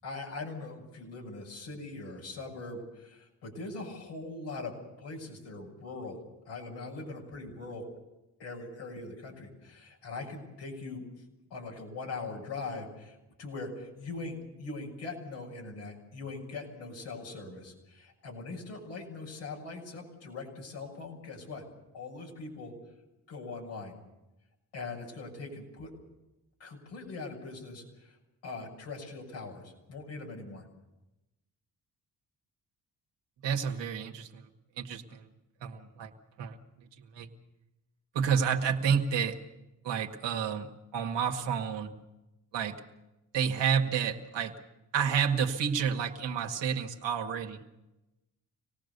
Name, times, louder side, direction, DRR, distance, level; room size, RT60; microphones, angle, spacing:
voice 1, 0.0-4.7 5.0-6.2 6.4-7.8 8.4-11.0 11.5-21.6 21.9-22.7 23.3-24.0 24.7-25.9 26.6-28.2 28.4-30.7, left 3 dB, 85° left, -1 dB, 6.7 m, -41 dB
voice 2, 33.4-34.5 34.8-35.3 35.6-36.1 36.4-37.3 38.1-39.4 39.8-41.9 42.5-42.8 43.3-44.5 44.9-47.7, right 7 dB, 80° right, 3 dB, 2.0 m, -30 dB
26.0 x 18.5 x 6.9 m, 0.97 s
supercardioid pair, 55°, 42 cm